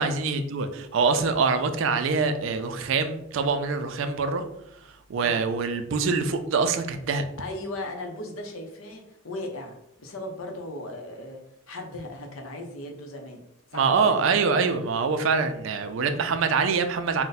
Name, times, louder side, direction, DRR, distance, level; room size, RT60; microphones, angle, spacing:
voice 1, 0.0-4.4 5.1-7.2 13.7-17.2, right 5 dB, 65° right, 8 dB, 0.3 m, -24 dB
voice 2, 7.4-11.4 11.7-13.4 13.7-14.3, left 1 dB, 80° left, 3 dB, 0.6 m, -37 dB
2.5 x 2.1 x 3.9 m, 0.81 s
head